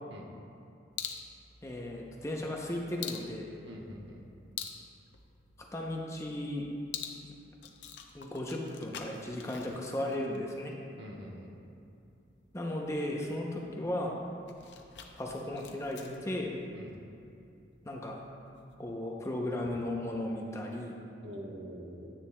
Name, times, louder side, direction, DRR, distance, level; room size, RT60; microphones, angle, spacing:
sound 1, 0.9-18.9, left 8 dB, 70° left, 0.6 m, -48 dB
voice 1, 1.6-3.4 5.7-6.7 8.1-10.7 12.5-14.2 15.2-16.5 17.8-18.2 18.8-20.9, left 1 dB, 15° left, -1 dB, 0.6 m, -35 dB
voice 2, 3.7-4.2 11.0-11.5 16.7-17.0 21.2-22.1, equal, 80° right, -1 dB, 1.1 m, -45 dB
10.0 x 8.6 x 2.2 m, 2.6 s
head